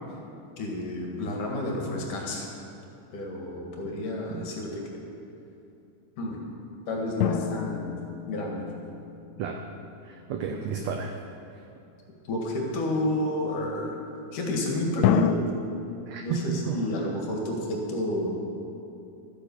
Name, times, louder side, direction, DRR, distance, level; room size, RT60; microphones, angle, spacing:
voice 1, 0.6-2.5 3.1-4.8 6.2-6.4 6.9-8.0 8.3-8.6 12.2-14.0 14.3-15.4 16.2-18.5, left 1 dB, 65° left, 0 dB, 3.3 m, -30 dB
sound 1, 7.2-10.1 15.0-15.4, left 10 dB, 90° left, 1.6 m, -29 dB
voice 2, 10.0-11.2 16.0-16.8, right 6 dB, 85° right, 5 dB, 1.5 m, -32 dB
12.5 x 10.0 x 7.1 m, 2.8 s
omnidirectional pair, 4.0 m